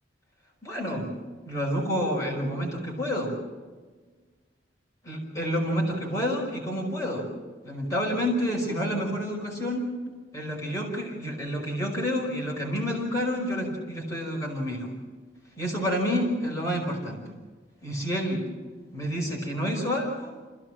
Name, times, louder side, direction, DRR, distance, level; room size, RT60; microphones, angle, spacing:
voice 1, 0.6-1.1 1.5-3.4 5.0-7.3 7.6-9.9 10.3-14.9 15.6-17.2 17.8-18.4 18.9-20.3, equal, 20° left, -2 dB, 5.2 m, -29 dB
27.5 x 16.5 x 7.6 m, 1.4 s
head